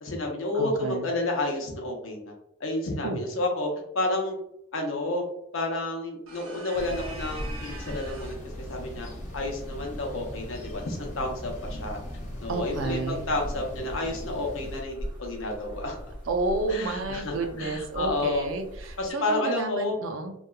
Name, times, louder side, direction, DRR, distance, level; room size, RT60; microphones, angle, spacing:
voice 1, 0.0-2.3 2.6-3.7 3.9-4.4 4.7-5.3 5.5-9.1 9.3-12.0 12.4-16.1 16.7-18.5 19.0-20.0, left 2 dB, 75° left, 1 dB, 0.7 m, -30 dB
voice 2, 0.5-1.1 3.0-3.2 12.5-13.3 16.3-20.3, right 3 dB, 75° right, 5 dB, 0.4 m, -31 dB
sound 1, 6.3-8.5, right 2 dB, 90° right, 0.8 m, -44 dB
sound 2, 6.7-14.8, left 1 dB, 35° left, 0.4 m, -40 dB
sound 3, 6.8-19.1, equal, 20° right, 0.8 m, -42 dB
2.8 x 2.3 x 2.2 m, 0.80 s
head